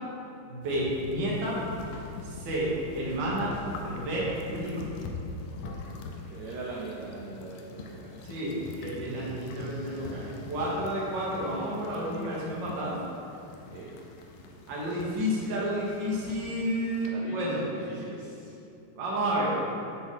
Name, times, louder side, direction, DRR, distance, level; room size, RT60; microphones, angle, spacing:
voice 1, 0.5-1.6 2.2-4.8 8.2-13.0 14.7-17.6 18.9-19.6, equal, 65° right, -6 dB, 1.1 m, -31 dB
sound 1, 0.6-17.1, left 3 dB, 85° left, 2.2 m, -43 dB
voice 2, 6.3-8.2 13.7-13.9 17.1-18.5, right 3 dB, 80° right, -3 dB, 1.6 m, -41 dB
6.2 x 4.9 x 3.8 m, 2.7 s
omnidirectional pair, 3.8 m